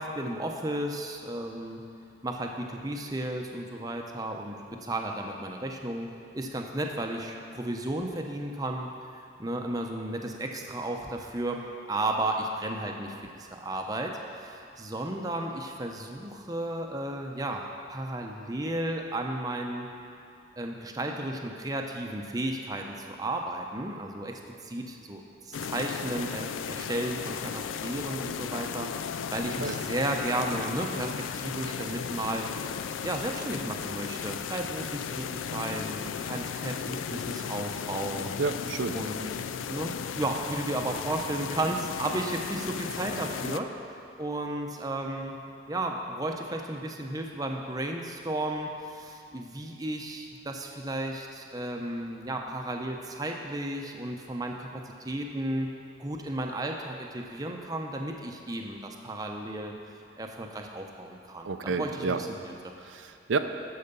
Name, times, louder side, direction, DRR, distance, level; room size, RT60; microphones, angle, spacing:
voice 1, 0.0-1.8 2.2-6.1 6.3-19.9 20.6-32.5 33.0-38.4 38.9-39.3 39.7-43.7 44.2-45.4 45.7-55.7 56.0-59.7 60.2-62.7, right 1 dB, 20° right, 2 dB, 0.7 m, -34 dB
sound 1, 25.5-43.6, left 7 dB, 90° left, 0.4 m, -35 dB
voice 2, 38.4-38.9 61.4-62.2 62.9-63.4, right 4 dB, 80° right, 7 dB, 0.5 m, -29 dB
12.0 x 4.8 x 6.8 m, 2.5 s
head